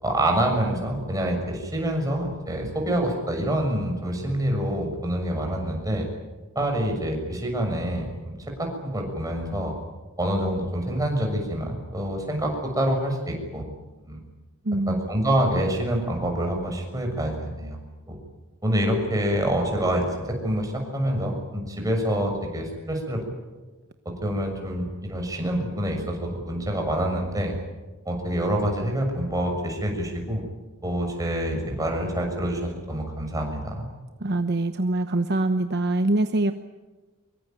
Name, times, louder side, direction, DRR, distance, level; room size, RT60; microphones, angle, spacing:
voice 1, 0.0-6.1 6.5-9.7 10.2-13.7 14.0-14.2 14.9-17.8 18.1-18.2 18.6-23.2 24.0-27.5 28.0-30.4 30.8-33.9, right 1 dB, 15° right, 2 dB, 6.6 m, -26 dB
voice 2, 14.6-15.1 34.2-36.5, right 2 dB, 50° right, 8 dB, 1.0 m, -24 dB
24.5 x 23.5 x 9.1 m, 1.2 s
head